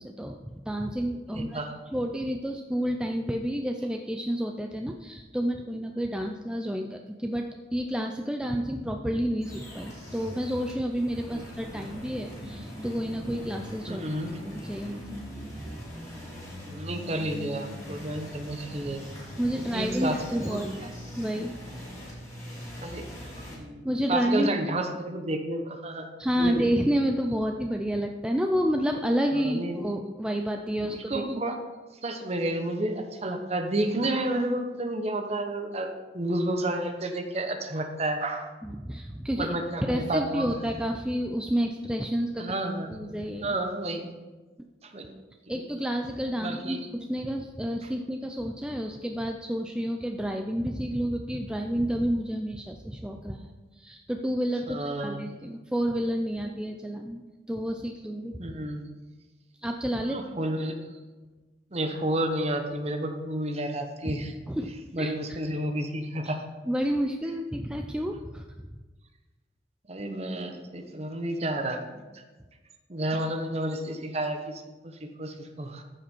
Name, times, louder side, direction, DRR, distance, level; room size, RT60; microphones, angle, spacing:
voice 1, 0.0-1.6 1.9-7.4 7.7-14.0 14.4-15.2 19.4-20.9 21.2-21.6 23.8-24.5 26.2-31.2 38.6-39.6 39.9-42.6 42.9-43.5 45.5-57.2 57.5-58.5 59.6-60.2 64.1-64.2 64.5-65.4 66.2-66.3 66.7-68.6, equal, 5° right, 3 dB, 0.4 m, -30 dB
voice 2, 1.3-1.7 11.3-11.5 11.7-12.0 13.9-14.4 16.6-19.0 19.7-20.6 22.8-23.1 23.4-23.8 24.1-26.1 26.4-26.7 29.3-29.9 31.1-31.6 32.0-35.9 36.1-38.5 39.4-40.5 42.4-43.0 43.4-44.1 44.8-45.1 45.5-45.6 46.4-46.8 54.7-55.3 58.4-58.8 60.0-60.8 61.7-64.3 64.9-66.4 69.9-72.2 72.9-75.8, right 1 dB, 35° right, 5 dB, 0.9 m, -31 dB
sound 1, 9.4-23.6, equal, 15° left, 2.9 m, -41 dB
14.0 x 5.0 x 4.5 m, 1.2 s
head